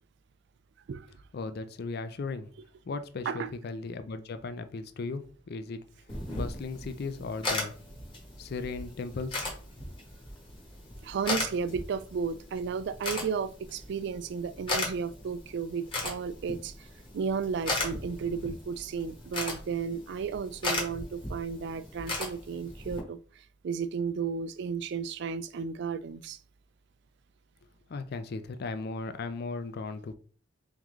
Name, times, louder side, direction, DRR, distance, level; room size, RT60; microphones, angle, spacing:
voice 1, 1.3-2.5 2.9-5.8 6.3-7.7 8.4-9.4 27.9-30.1, left 3 dB, 55° left, 0.4 m, -36 dB
sound 1, 6.1-23.0, left 2 dB, 25° left, 1.2 m, -37 dB
voice 2, 11.0-16.9 17.1-26.4, right 6 dB, 65° right, 0.3 m, -33 dB
3.6 x 3.6 x 3.1 m
head